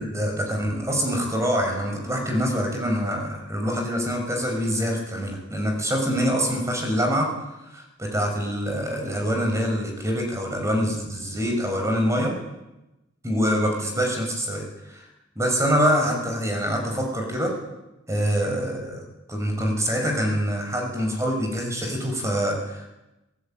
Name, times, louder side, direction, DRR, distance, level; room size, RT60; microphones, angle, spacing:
voice 1, 0.0-7.3 7.6-12.3 13.2-15.1 15.4-17.5 18.1-19.0 19.3-22.9, equal, 15° right, 2 dB, 5.8 m, -25 dB
25.0 x 19.0 x 9.0 m, 0.97 s
head